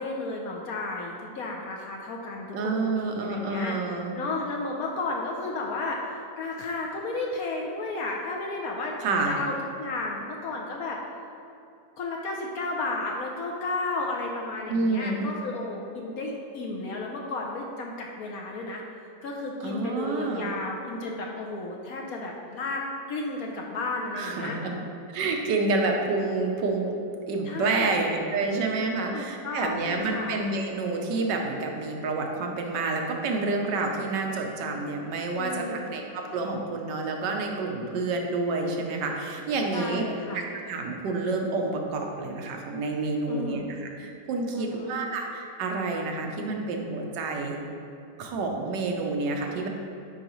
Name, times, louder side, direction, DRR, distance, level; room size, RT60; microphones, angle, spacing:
voice 1, 0.0-3.7 4.2-8.9 9.3-11.0 12.0-18.8 19.2-22.8 23.1-24.6 27.4-28.0 29.1-30.4 35.4-35.9 39.7-40.4 43.3-43.7 44.5-45.0, left 3 dB, 70° left, 0 dB, 1.0 m, -33 dB
voice 2, 2.5-4.1 9.0-9.4 14.7-15.3 19.6-20.5 24.1-24.8 25.1-27.0 27.3-40.0 40.3-47.6 48.2-49.7, right 3 dB, 90° right, 2 dB, 1.4 m, -28 dB
8.9 x 4.8 x 3.0 m, 2.7 s
omnidirectional pair, 1.8 m